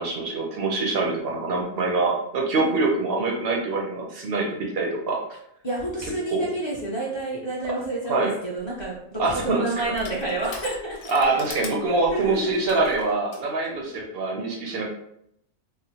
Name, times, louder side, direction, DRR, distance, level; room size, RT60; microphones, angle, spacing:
voice 1, 0.0-5.2 6.3-6.5 8.1-8.3 9.2-9.7 11.1-14.9, right 3 dB, 60° right, 0 dB, 0.6 m, -24 dB
voice 2, 2.5-3.0 5.6-11.0 11.9-12.6 13.7-14.0, right 2 dB, 30° left, -5 dB, 0.5 m, -30 dB
Crushing, 8.6-13.5, left 4 dB, 85° left, 1.0 m, -42 dB
3.6 x 2.0 x 2.8 m, 0.76 s
omnidirectional pair, 1.4 m